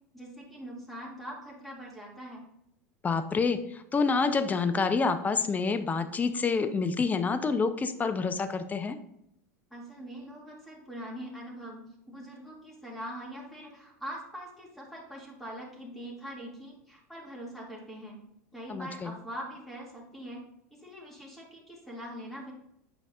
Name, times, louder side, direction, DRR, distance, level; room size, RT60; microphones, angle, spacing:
voice 1, 0.1-2.5 9.7-18.2 18.5-20.4 20.7-22.5, equal, ahead, -3 dB, 2.3 m, -43 dB
voice 2, 3.0-9.0 18.7-19.1, left 4 dB, 20° left, 10 dB, 0.6 m, -28 dB
8.5 x 5.2 x 2.5 m, 0.79 s
hypercardioid pair, 100°, 8 cm